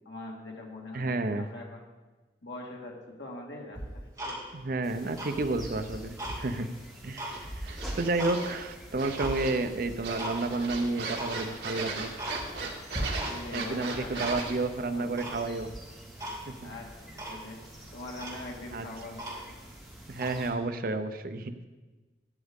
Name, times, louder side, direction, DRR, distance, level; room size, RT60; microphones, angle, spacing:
voice 1, 0.1-1.8 2.4-4.4 5.1-5.4 13.1-14.5 14.7-15.2 16.6-17.6 17.9-19.5, left 2 dB, 80° left, -1 dB, 2.0 m, -43 dB
voice 2, 0.9-1.5 4.5-6.7 7.0-12.1 13.5-15.7 16.5-16.7 18.7-18.9 20.1-21.7, right 2 dB, 55° right, 9 dB, 0.6 m, -31 dB
Tick-tock, 3.7-4.8 5.1-6.4 6.8-8.4 8.8-9.4 9.8-10.4 10.6-10.7 11.1-11.4 11.8-11.9 12.2-12.7 12.9-13.6 13.9-14.7 15.2-15.7 16.2-16.4 16.7-16.8 17.2-17.4 17.9-18.0 18.2-19.7 20.1-20.4, right 1 dB, 20° right, 2.6 m, -38 dB
sound 1, 4.8-20.5, right 1 dB, ahead, 2.0 m, -48 dB
sound 2, 7.3-8.6 9.0-9.7 10.0-14.6, right 3 dB, 70° right, 2.0 m, -37 dB
12.0 x 9.8 x 3.7 m, 1.3 s
head